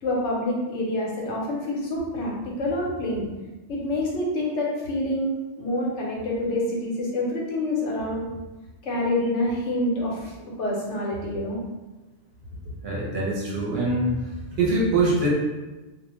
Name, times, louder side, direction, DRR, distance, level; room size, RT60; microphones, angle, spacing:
voice 1, 0.0-3.3 3.7-5.3 5.6-8.3 8.8-10.3 10.6-11.6 12.7-12.8, left 1 dB, 85° left, -3 dB, 1.0 m, -27 dB
voice 2, 12.8-14.1 14.5-15.3, right 2 dB, 65° right, -3 dB, 0.8 m, -23 dB
2.4 x 2.1 x 2.9 m, 1.2 s
omnidirectional pair, 1.2 m